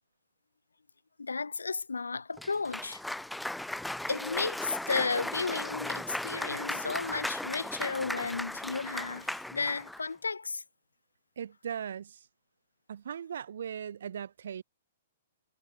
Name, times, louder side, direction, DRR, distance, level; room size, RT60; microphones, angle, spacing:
voice 1, 1.2-3.0 4.1-10.6, left 4 dB, 80° left, 2.3 m, -33 dB
Cheering / Applause, 2.4-10.1, left 1 dB, 5° left, 1.1 m, -36 dB
voice 2, 11.4-12.3 12.9-14.6, right 8 dB, 65° right, 2.0 m, -38 dB
figure-of-eight pair, 120°, 0 cm